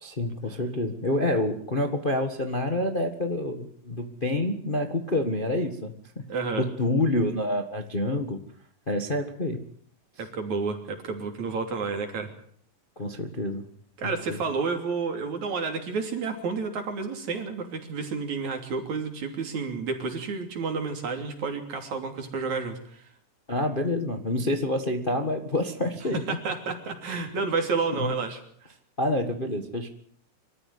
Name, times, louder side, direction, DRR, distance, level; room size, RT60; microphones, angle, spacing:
voice 1, 0.0-6.2 6.6-8.4 8.9-9.6 13.0-13.6 14.0-14.4 23.5-26.4 27.9-28.1 29.0-29.9, left 1 dB, 25° left, 6 dB, 1.2 m, -28 dB
voice 2, 6.3-6.7 10.2-12.3 14.0-23.1 26.3-28.4, right 4 dB, 70° right, 5 dB, 4.5 m, -30 dB
25.5 x 14.0 x 9.6 m, 0.63 s
omnidirectional pair, 3.4 m